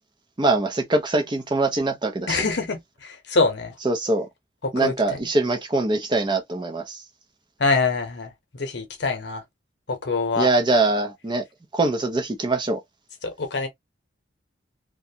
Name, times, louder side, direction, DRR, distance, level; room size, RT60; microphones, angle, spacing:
voice 1, 0.4-2.4 3.8-4.3 4.7-7.0 10.4-11.4 11.7-12.8, right 2 dB, 25° right, 0.4 m, -23 dB
voice 2, 2.3-3.7 4.6-5.2 7.6-9.4 9.9-10.5 13.2-13.7, left 3 dB, 60° left, 0.8 m, -25 dB
2.5 x 2.2 x 2.7 m
head